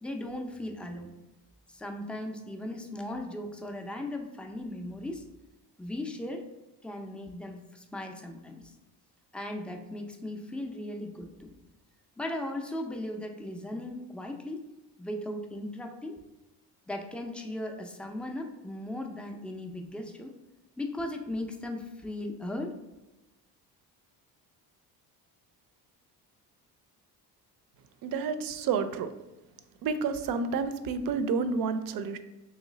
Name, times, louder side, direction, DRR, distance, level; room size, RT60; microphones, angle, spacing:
voice 1, 0.0-1.1 1.7-5.2 5.8-6.5 6.8-8.7 9.3-11.5 12.2-14.6 15.0-16.2 16.9-20.3 20.8-22.7, left 1 dB, 5° left, 3 dB, 0.3 m, -37 dB
voice 2, 28.0-29.1 29.8-32.2, right 5 dB, 60° right, 10 dB, 0.5 m, -30 dB
3.1 x 3.0 x 3.8 m, 1.0 s
cardioid pair, 100°, 39 cm